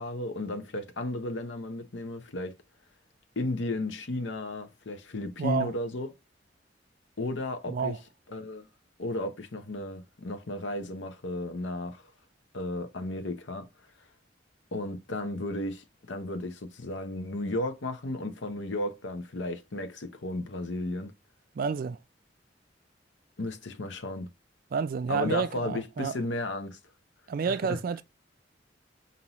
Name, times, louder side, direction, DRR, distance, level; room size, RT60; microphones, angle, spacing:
voice 1, 0.0-2.5 3.4-6.1 7.2-8.0 8.3-8.7 9.0-12.0 12.5-13.7 14.7-21.1 23.4-24.3 25.1-26.8 27.4-27.8, left 2 dB, 80° left, 0.8 m, -34 dB
voice 2, 5.4-5.7 7.7-8.0 21.5-22.0 24.7-26.1 27.3-28.0, right 6 dB, 50° right, 0.3 m, -30 dB
5.5 x 2.7 x 2.9 m
head